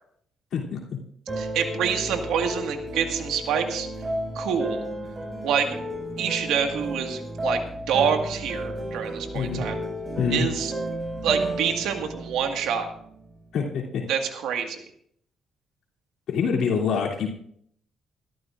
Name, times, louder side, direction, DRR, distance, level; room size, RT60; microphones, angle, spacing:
voice 1, 0.5-1.0 9.3-9.6 10.2-10.5 13.5-14.1 16.3-17.3, left 6 dB, 75° left, -1 dB, 3.0 m, -26 dB
sound 1, 1.3-13.4, right 1 dB, 30° right, 5.7 m, -32 dB
voice 2, 1.4-3.9 4.3-4.8 5.4-5.8 6.2-7.6 7.9-9.8 10.3-10.7 11.2-12.9 14.1-14.8, right 7 dB, 85° right, 5 dB, 1.8 m, -26 dB
22.5 x 13.5 x 2.5 m, 0.66 s
cardioid pair, 90°, 0 cm